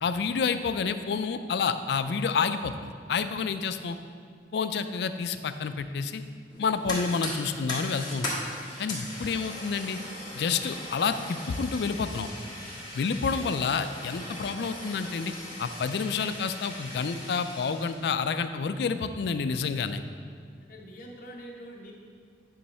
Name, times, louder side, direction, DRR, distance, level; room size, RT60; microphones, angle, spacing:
voice 1, 0.0-4.0 4.5-6.2 6.6-8.4 8.8-10.0 10.3-12.3 12.9-20.0, left 5 dB, 65° left, 10 dB, 0.4 m, -29 dB
Fire, 6.5-18.1, left 1 dB, 25° left, 1.8 m, -39 dB
voice 2, 20.6-21.9, equal, 50° left, -2 dB, 1.0 m, -45 dB
9.5 x 3.2 x 5.5 m, 2.1 s
head